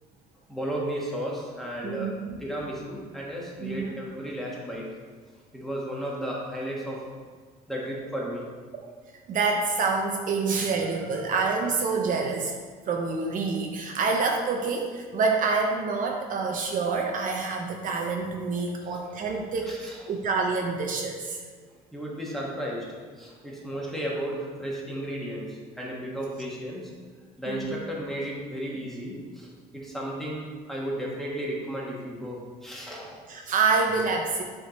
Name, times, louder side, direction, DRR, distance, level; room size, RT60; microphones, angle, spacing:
voice 1, 0.5-5.0 5.5-7.0 7.7-8.5 10.8-10.9 11.1-11.3 11.6-11.7 18.8-19.0 19.7-20.0 21.9-26.9 27.4-33.2, equal, ahead, -4 dB, 1.3 m, -34 dB
voice 2, 1.8-2.4 3.6-3.9 9.3-12.5 12.9-21.4 27.5-27.7 33.3-34.4, right 4 dB, 55° right, 1 dB, 0.7 m, -27 dB
6.6 x 3.5 x 4.1 m, 1.5 s
cardioid pair, 110°, 17 cm